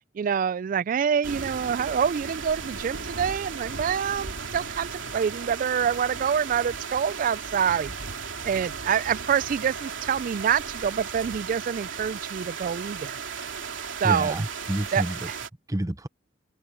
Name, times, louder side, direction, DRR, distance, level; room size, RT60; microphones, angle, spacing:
voice 1, 0.2-7.9 8.4-13.2 14.0-14.3 14.9-15.0, right 7 dB, 45° right, 0.3 m, -26 dB
sound 1, 1.2-15.5, right 5 dB, 80° right, 2.9 m, -36 dB
voice 2, 14.0-15.3 15.7-16.1, right 1 dB, 20° right, 0.9 m, -29 dB
head